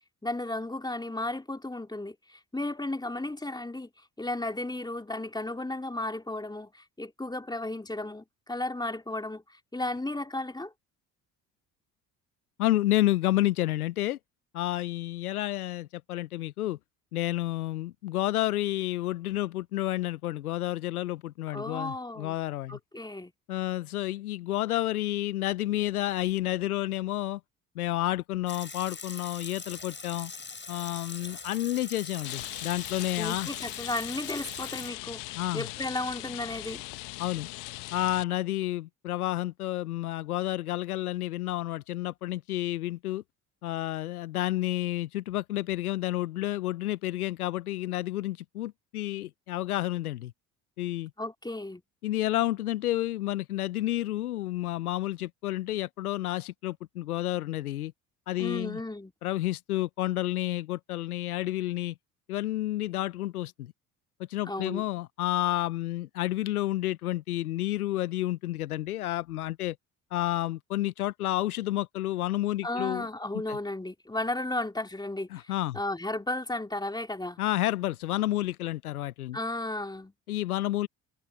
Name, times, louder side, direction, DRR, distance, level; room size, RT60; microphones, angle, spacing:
voice 1, 0.2-3.9 4.2-10.7 21.5-22.4 22.7-23.3 33.2-36.8 51.2-51.8 58.4-59.1 64.4-64.8 72.6-75.3 75.7-77.4 79.3-80.1, left 2 dB, 10° left, 2.9 m, -34 dB
voice 2, 12.6-14.2 14.5-16.8 17.1-22.8 23.5-27.4 27.8-30.3 30.7-33.5 35.4-35.7 37.2-37.5 37.9-43.2 43.6-50.3 50.8-51.1 52.0-57.9 58.3-58.8 59.2-61.9 62.3-63.7 64.3-69.8 70.1-73.1 73.5-73.6 75.3-75.8 77.4-79.4 80.3-80.9, left 15 dB, 90° left, 0.8 m, -30 dB
Water tap faucet / Sink (filling or washing) / Liquid, 28.5-34.9, left 4 dB, 25° left, 6.7 m, -42 dB
Rain, 32.2-38.2, left 25 dB, 70° left, 1.4 m, -40 dB
open air
hypercardioid pair, 55°, 43 cm